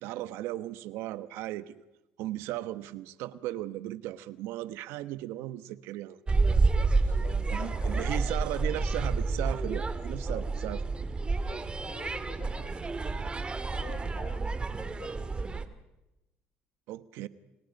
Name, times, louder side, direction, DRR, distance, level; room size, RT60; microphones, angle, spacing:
voice 1, 0.0-1.8 2.2-6.2 7.5-10.8 16.9-17.3, right 14 dB, 80° right, 13 dB, 1.2 m, -36 dB
sound 1, 6.3-15.7, right 3 dB, 25° right, 2.1 m, -29 dB
voice 2, 6.8-8.7 10.1-10.5 11.2-13.3 13.6-15.6, left 6 dB, 60° left, 7 dB, 6.0 m, -49 dB
29.0 x 27.0 x 5.4 m, 0.96 s
supercardioid pair, 90°, 4 cm